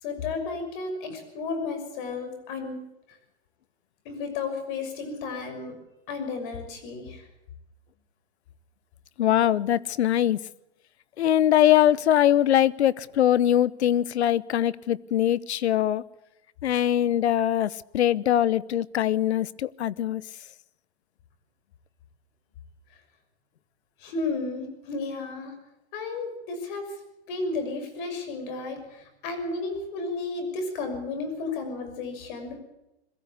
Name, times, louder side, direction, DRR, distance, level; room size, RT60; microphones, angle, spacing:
voice 1, 0.0-2.8 4.0-5.8 6.1-7.3 24.0-25.5 25.9-26.9 27.3-32.6, left 3 dB, 50° left, 7 dB, 6.4 m, -33 dB
voice 2, 9.2-10.4 11.2-16.0 16.6-20.2, left 11 dB, 80° left, 21 dB, 0.9 m, -22 dB
22.0 x 15.0 x 8.4 m, 0.91 s
hypercardioid pair, 140°, 32 cm